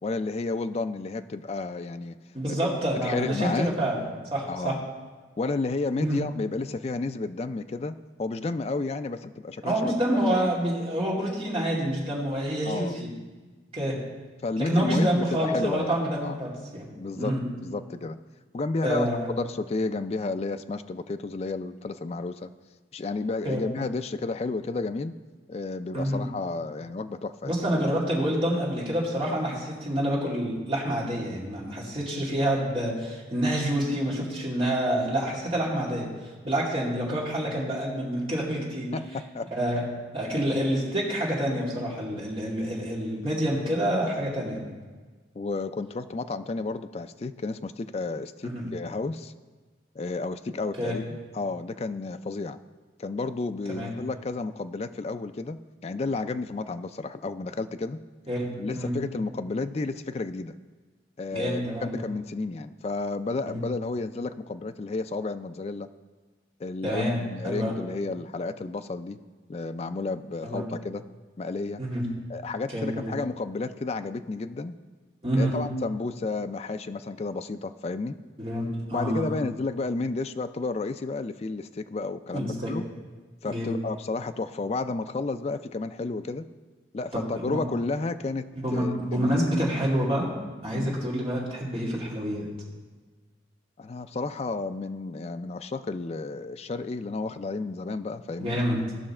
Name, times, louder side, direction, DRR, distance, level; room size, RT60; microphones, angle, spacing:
voice 1, 0.0-2.2 2.4-2.7 3.0-3.8 4.5-4.8 5.4-10.2 12.7-13.0 14.4-16.4 17.0-17.4 17.6-18.2 18.5-19.1 19.4-22.5 22.9-25.1 25.5-27.6 38.9-39.5 45.4-49.3 50.0-52.6 53.0-58.0 58.6-60.5 61.2-65.9 66.6-69.2 69.5-71.0 71.4-71.8 72.3-74.8 75.4-78.2 78.9-82.8 83.4-86.5 86.9-89.5 90.7-91.1 93.8-98.6, left 3 dB, 35° left, 10 dB, 0.3 m, -32 dB
voice 2, 2.3-4.0 4.3-4.8 6.0-6.2 9.6-13.1 13.7-14.0 14.6-16.9 17.2-17.4 18.8-19.3 23.4-23.6 25.9-26.2 27.4-36.1 36.4-38.9 39.5-39.8 40.1-44.6 48.4-48.7 50.8-51.0 53.7-54.0 58.3-58.9 61.3-62.0 63.5-63.6 66.8-67.2 67.4-67.7 70.4-70.6 71.8-72.1 72.7-73.1 75.2-75.5 78.4-79.3 82.3-82.7 83.5-83.7 87.1-87.6 88.5-90.3 90.6-92.4 98.4-98.8, equal, 30° right, -5 dB, 2.3 m, -27 dB
16.5 x 5.7 x 4.3 m, 1.4 s
head